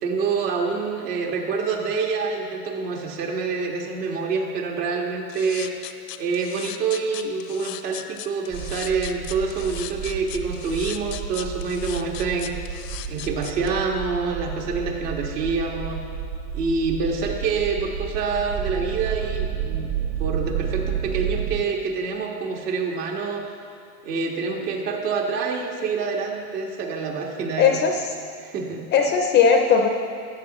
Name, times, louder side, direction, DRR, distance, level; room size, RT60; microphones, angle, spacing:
voice 1, 0.0-5.8 6.2-12.6 13.1-16.0 16.5-19.9 20.2-23.5 24.0-27.8 28.4-28.9, right 4 dB, 75° right, 0 dB, 1.6 m, -27 dB
sound 1, 5.3-13.7, left 14 dB, 85° left, 0.7 m, -37 dB
sound 2, 8.5-21.6, right 8 dB, 55° right, 1.3 m, -31 dB
voice 2, 27.6-28.0 28.9-29.9, left 6 dB, 25° left, 4 dB, 0.4 m, -18 dB
13.0 x 9.0 x 2.9 m, 2.5 s
supercardioid pair, 120°, 47 cm